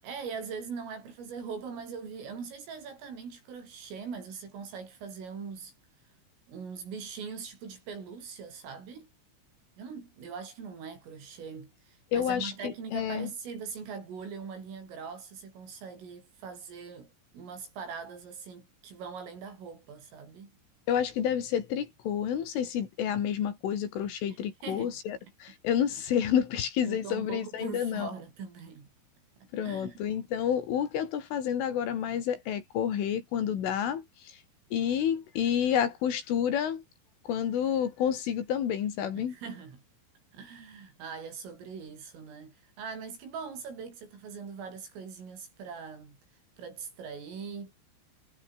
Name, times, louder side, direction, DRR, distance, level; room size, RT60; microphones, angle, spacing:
voice 1, 0.0-5.7 6.5-9.1 9.8-20.5 24.3-25.0 26.8-28.9 29.4-30.0 39.2-39.8 40.3-46.2 46.6-47.7, right 6 dB, 90° right, 9.3 m, -42 dB
voice 2, 12.1-13.3 20.9-28.1 29.5-34.4 34.7-36.8 37.3-39.4, left 9 dB, 80° left, 5.6 m, -29 dB
omnidirectional pair, 5.7 m